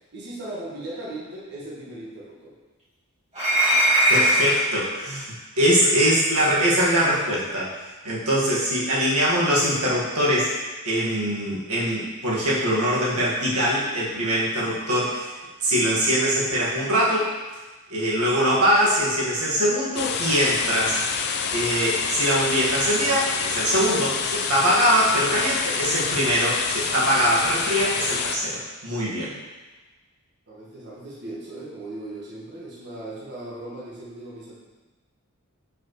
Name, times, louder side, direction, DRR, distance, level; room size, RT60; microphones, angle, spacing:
voice 1, 0.1-2.5 30.5-34.5, right 1 dB, 50° right, -6 dB, 1.4 m, -37 dB
sound 1, 3.3-4.7 6.0-6.1 7.0-7.2, equal, 30° right, 2.0 m, -20 dB
voice 2, 4.1-7.7 8.0-10.5 10.9-15.3 15.6-17.4 17.9-21.0 21.5-29.3, equal, 90° right, -6 dB, 1.7 m, -22 dB
sound 2, 20.0-28.4, left 6 dB, 50° left, 0.5 m, -27 dB
7.1 x 5.3 x 3.1 m, 1.2 s
head